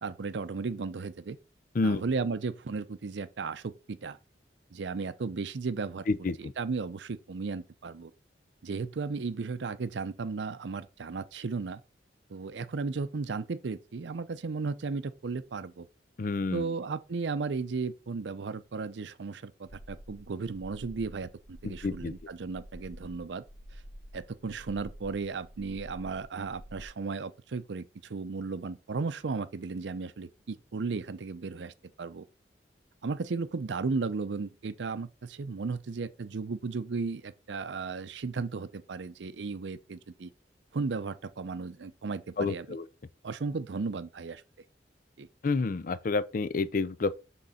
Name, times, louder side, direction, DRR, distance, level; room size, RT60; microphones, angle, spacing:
voice 1, 0.0-1.4 1.8-4.2 4.7-8.1 8.6-11.8 12.3-15.9 16.5-23.4 24.1-31.7 32.0-32.2 33.0-40.3 40.7-42.8 43.2-44.4 45.2-45.3, right 4 dB, 90° right, 0.5 m, -35 dB
voice 2, 6.1-6.5 16.2-16.7 21.6-22.1 42.4-42.8 45.4-47.1, left 3 dB, 50° left, 0.5 m, -29 dB
sound 1, 19.7-26.9, equal, 80° left, 1.8 m, -49 dB
6.3 x 3.8 x 5.6 m
head